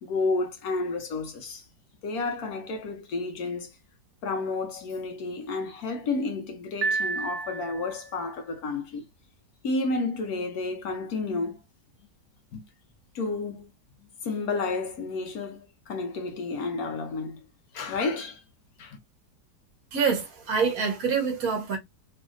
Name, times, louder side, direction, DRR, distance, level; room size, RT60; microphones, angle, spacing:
voice 1, 0.0-1.6 2.0-3.8 4.2-9.1 9.6-11.6 12.5-12.6 13.1-13.7 14.0-17.5 17.7-18.4 18.8-19.0, left 3 dB, 65° left, 1.1 m, -31 dB
Piano, 6.8-8.1, right 4 dB, 85° right, 1.4 m, -30 dB
voice 2, 19.9-21.8, right 5 dB, 65° right, 1.2 m, -26 dB
3.1 x 2.7 x 2.4 m
omnidirectional pair, 1.8 m